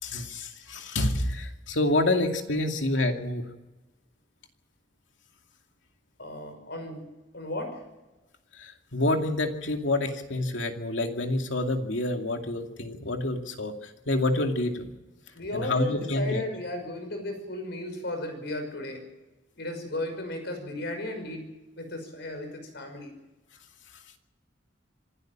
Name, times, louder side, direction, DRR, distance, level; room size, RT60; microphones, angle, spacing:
voice 1, 0.0-3.4 8.6-14.8 15.5-16.4, left 2 dB, 85° left, 4 dB, 2.5 m, -28 dB
voice 2, 6.2-7.0 7.3-7.8 15.3-19.0 19.6-21.4 21.8-23.1, left 1 dB, 65° left, 6 dB, 5.7 m, -34 dB
26.0 x 12.5 x 8.9 m, 1.1 s
head